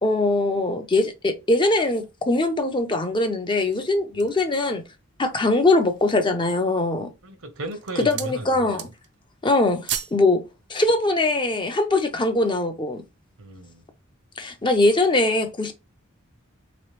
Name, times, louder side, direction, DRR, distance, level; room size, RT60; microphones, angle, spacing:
voice 1, 0.0-4.8 5.2-7.1 8.0-8.9 9.4-10.4 10.7-13.0 14.4-15.7, left 2 dB, 25° left, 0.5 m, -22 dB
sound 1, 3.5-4.5 5.1-5.2 5.7-6.2 6.9-7.3 7.6-8.4 8.7-9.2 9.5-10.2 10.5-10.7, right 10 dB, 55° right, 0.4 m, -34 dB
voice 2, 7.2-8.8 13.4-13.8, right 2 dB, 75° right, 0.8 m, -36 dB
3.2 x 3.1 x 3.1 m
head